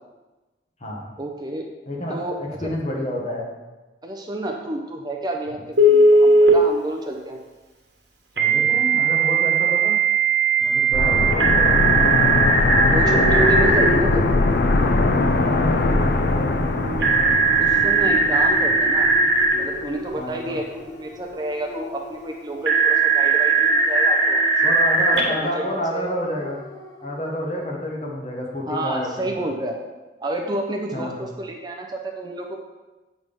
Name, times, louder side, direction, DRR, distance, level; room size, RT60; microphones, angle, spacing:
voice 1, 1.2-1.7 2.1-2.7 4.0-7.4 12.8-14.2 17.6-19.1 19.5-24.7 25.1-26.1 28.7-29.8 30.2-32.6, right 1 dB, 25° right, 2 dB, 0.6 m, -30 dB
voice 2, 1.9-3.5 8.4-9.9 10.6-12.1 15.5-16.8 20.2-20.6 24.6-26.6 27.0-29.5 30.9-31.2, equal, 35° left, -2 dB, 1.3 m, -29 dB
Telephone, 5.8-6.5 8.4-13.9 17.0-19.5 22.7-25.2, right 3 dB, 70° right, 1.3 m, -18 dB
sound 1, 10.9-19.6 19.9-20.0, left 2 dB, 60° left, 0.5 m, -21 dB
sound 2, 13.0-27.2, equal, 20° left, 0.7 m, -33 dB
7.8 x 3.5 x 5.3 m, 1.2 s
head